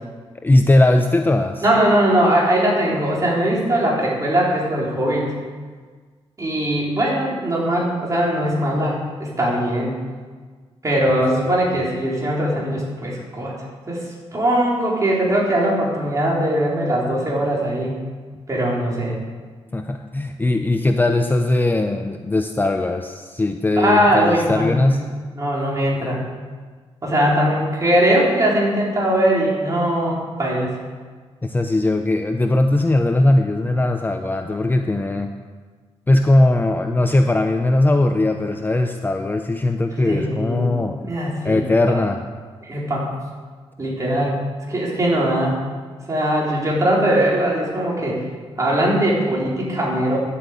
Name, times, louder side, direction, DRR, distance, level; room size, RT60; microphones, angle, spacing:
voice 1, 0.4-1.6 19.7-25.0 31.4-35.3 36.1-41.1 41.4-42.2, left 2 dB, 20° left, 5 dB, 0.7 m, -19 dB
voice 2, 1.6-5.3 6.4-10.0 10.8-13.5 13.9-14.1 14.3-18.0 18.5-19.1 23.8-25.0 25.4-26.2 27.0-30.7 40.0-40.8 41.0-41.6 41.9-42.0 42.6-43.1 43.8-44.4 44.7-45.6 46.1-48.2 48.6-50.2, right 1 dB, 30° right, -4 dB, 4.3 m, -20 dB
11.0 x 8.5 x 8.3 m, 1.5 s
cardioid pair, 105°, 11 cm